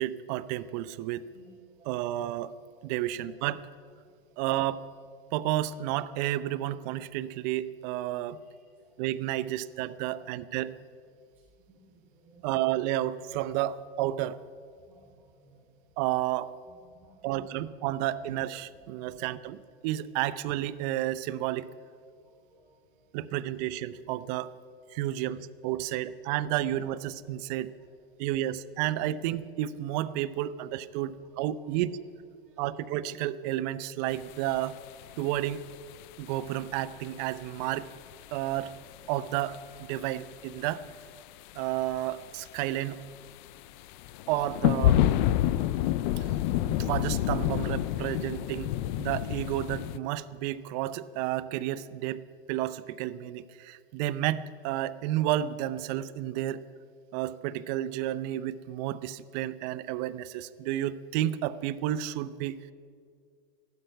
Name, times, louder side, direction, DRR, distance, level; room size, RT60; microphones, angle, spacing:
voice 1, 0.0-1.2 1.8-2.6 2.8-3.7 4.4-4.9 5.3-8.4 9.0-10.7 12.4-14.4 16.0-16.5 17.2-21.7 23.1-24.5 24.9-27.7 28.2-31.9 32.6-34.8 35.2-35.6 36.2-37.9 38.3-38.7 39.1-39.6 39.9-40.8 41.5-43.0 44.3-45.0 46.2-46.3 46.7-48.7 49.0-52.2 52.5-56.6 57.1-62.6, right 13 dB, 45° right, 16 dB, 0.6 m, -31 dB
voice 2, 11.7-12.6 14.8-15.6 16.9-17.5 19.0-19.3 22.2-22.9 31.6-31.8 32.4-32.6, right 2 dB, 5° right, -10 dB, 4.8 m, -59 dB
sound 1, 34.1-36.5 36.7-37.6 37.9-38.8 39.2-40.0 40.3-41.2 41.5-42.0 42.5-42.6 43.0-50.0, left 12 dB, 50° left, 0.5 m, -28 dB
14.5 x 12.0 x 5.6 m, 2.2 s
supercardioid pair, 140°, 30 cm